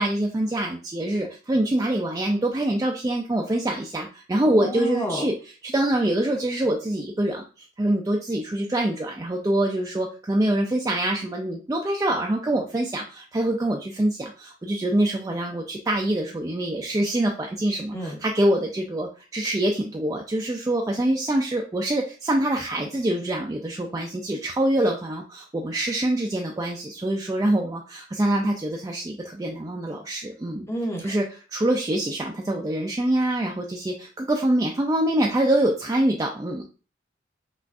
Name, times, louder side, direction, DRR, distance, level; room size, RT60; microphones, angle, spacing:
voice 1, 0.0-30.7 31.0-36.6, right 1 dB, 20° right, 0 dB, 0.3 m, -25 dB
voice 2, 4.4-5.2 17.9-18.1 30.7-31.1, equal, 15° left, 0 dB, 0.7 m, -29 dB
5.7 x 2.4 x 2.4 m, 0.35 s
head